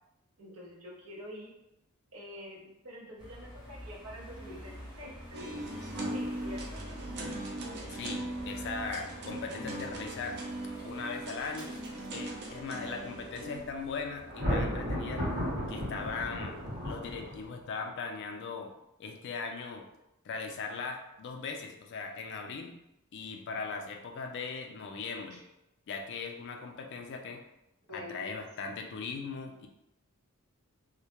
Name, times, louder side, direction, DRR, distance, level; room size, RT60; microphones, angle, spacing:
voice 1, 0.4-1.5 2.1-6.8 25.3-25.4 27.9-28.4, left 1 dB, 90° right, -3 dB, 0.7 m, -47 dB
sound 1, 3.2-17.5, equal, 20° right, 0.8 m, -49 dB
sound 2, 5.3-13.6, right 1 dB, 50° right, 0.4 m, -39 dB
voice 2, 7.9-10.4 10.8-11.8 12.1-15.2 15.7-16.6 16.8-18.7 19.0-19.9 20.2-22.8 23.1-25.4 25.9-27.4 27.9-29.7, left 4 dB, 50° left, 3 dB, 0.3 m, -39 dB
Thunder, 14.3-17.6, equal, 65° right, 0.9 m, -33 dB
2.1 x 2.0 x 2.8 m, 0.89 s
head